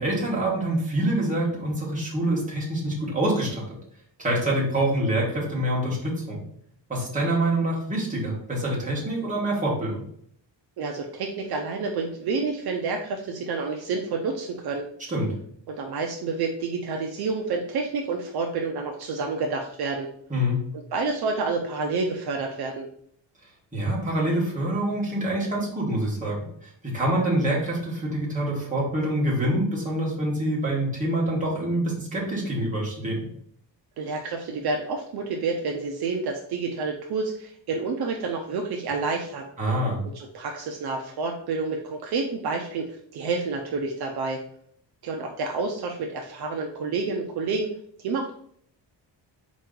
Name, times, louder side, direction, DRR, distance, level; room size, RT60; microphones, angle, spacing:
voice 1, 0.0-3.6 4.2-6.4 6.9-10.0 15.1-15.3 20.3-20.6 23.7-33.3 39.6-40.0, right 1 dB, 15° right, -4 dB, 1.4 m, -26 dB
voice 2, 10.8-14.9 15.7-20.1 20.9-22.9 34.0-39.5 40.0-44.4 45.0-47.7 48.0-48.3, right 4 dB, 60° right, 1 dB, 0.6 m, -29 dB
4.4 x 3.1 x 3.8 m, 0.65 s
cardioid pair, 170°, 44 cm